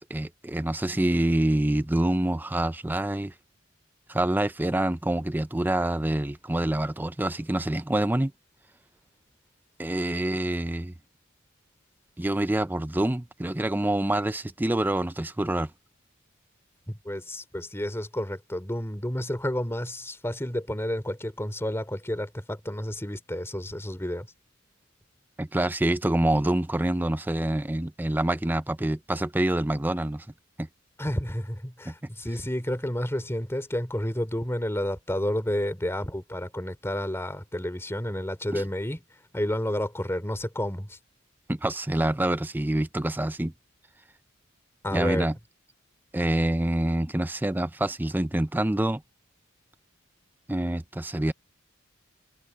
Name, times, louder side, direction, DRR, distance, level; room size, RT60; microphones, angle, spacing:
voice 1, 0.0-3.3 4.1-8.3 9.8-10.9 12.2-15.7 25.4-30.3 30.6-30.7 31.9-32.0 38.5-38.6 41.5-43.5 44.9-45.4 46.1-49.0 50.5-51.3, right 1 dB, 10° right, 0.5 m, -26 dB
voice 2, 16.9-24.3 31.0-39.0 39.3-41.0 44.8-45.3, left 1 dB, 10° left, 3.0 m, -30 dB
head